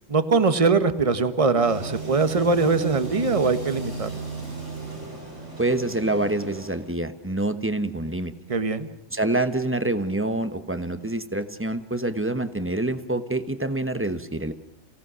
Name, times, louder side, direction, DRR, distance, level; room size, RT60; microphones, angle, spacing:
voice 1, 0.1-4.2 8.5-8.9, right 4 dB, 30° right, 11 dB, 1.3 m, -22 dB
sound 1, 1.5-6.9, right 4 dB, 90° right, 7.0 m, -35 dB
voice 2, 5.6-8.3 9.1-14.5, right 2 dB, 10° right, 10 dB, 1.1 m, -26 dB
29.5 x 17.5 x 6.3 m, 0.78 s
omnidirectional pair, 1.2 m